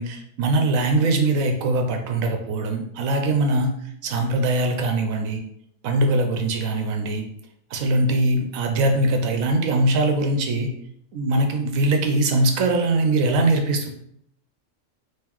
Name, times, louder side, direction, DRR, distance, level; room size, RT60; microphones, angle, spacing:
voice 1, 0.0-3.8 4.0-5.4 5.8-7.2 7.7-10.7 11.1-13.9, right 2 dB, 75° right, 4 dB, 1.0 m, -21 dB
3.7 x 3.0 x 2.9 m, 0.71 s
omnidirectional pair, 1.4 m